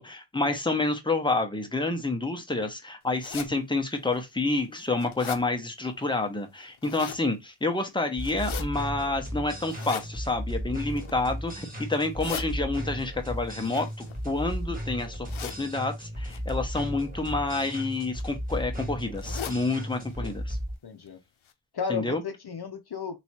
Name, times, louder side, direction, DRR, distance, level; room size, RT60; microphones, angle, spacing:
voice 1, 0.0-13.9 14.2-15.3 15.6-20.6 21.9-22.2, left 2 dB, 10° left, 1.2 m, -29 dB
sound 1, 3.2-3.5 4.1-4.2 4.7-5.4 6.6-7.2 8.2-8.6 9.6-10.1 10.8-11.2 11.9-12.5 13.6-14.6 15.3-15.6 16.3-16.5 17.5-17.8 18.1-18.2 18.5-18.6 19.1-19.6 20.0-20.1 20.4-20.5 21.1-21.2 21.5-21.6, left 9 dB, 85° left, 0.7 m, -38 dB
sound 2, 8.2-20.7, equal, 20° right, 2.0 m, -35 dB
voice 2, 19.9-20.4 20.8-21.2 21.7-23.2, left 6 dB, 55° left, 0.8 m, -34 dB
3.1 x 3.0 x 4.3 m
cardioid pair, 55°, 46 cm